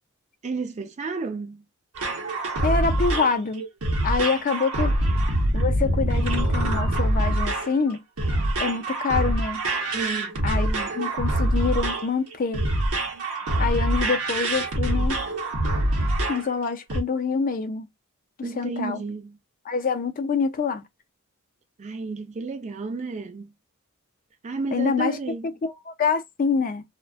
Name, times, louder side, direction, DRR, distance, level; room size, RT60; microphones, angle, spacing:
voice 1, 0.4-1.6 9.9-10.4 10.7-10.9 18.4-19.4 21.8-23.5 24.4-25.5, right 4 dB, 35° right, 0.4 m, -32 dB
sound 1, 2.0-16.5 16.9-17.0, right 1 dB, 75° right, 0.8 m, -24 dB
voice 2, 2.6-3.6 4.0-5.0 5.5-8.0 8.6-9.6 10.4-12.6 13.6-15.2 16.3-17.9 18.6-19.0 19.7-20.8 24.7-25.2 25.6-26.8, left 5 dB, 40° left, 0.4 m, -26 dB
2.4 x 2.1 x 2.4 m
head